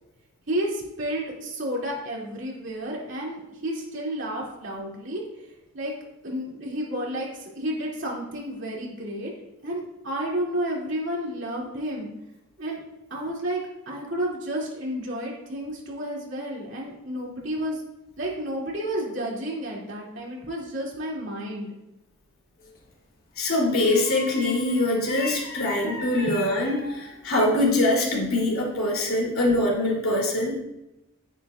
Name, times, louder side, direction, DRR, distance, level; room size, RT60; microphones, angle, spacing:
voice 1, 0.5-5.5 5.7-5.9 6.2-9.3 9.6-12.1 12.6-12.8 13.1-17.8 18.2-21.7 26.2-26.4, right 1 dB, 60° right, -3 dB, 2.5 m, -31 dB
sound 1, 22.6-22.9 23.7-27.8 28.1-29.1 29.5-29.7, left 2 dB, 45° left, 1.3 m, -39 dB
voice 2, 23.4-30.5, left 1 dB, 85° left, -3 dB, 3.0 m, -23 dB
11.0 x 9.6 x 2.4 m, 0.92 s
head